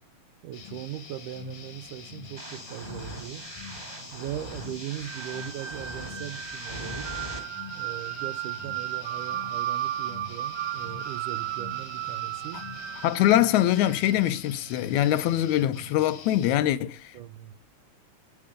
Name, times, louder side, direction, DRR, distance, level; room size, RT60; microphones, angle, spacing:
voice 1, 0.4-3.4 4.1-7.1 7.8-12.6 17.1-17.5, right 12 dB, 85° right, 2.4 m, -39 dB
sound 1, 0.5-16.6, left 5 dB, 55° left, 2.0 m, -45 dB
sound 2, 2.4-7.4, right 1 dB, 15° right, 2.3 m, -41 dB
sound 3, 5.0-14.2, right 13 dB, 60° right, 2.1 m, -34 dB
voice 2, 13.0-17.2, left 13 dB, 75° left, 1.9 m, -23 dB
9.1 x 8.8 x 5.1 m
omnidirectional pair, 3.6 m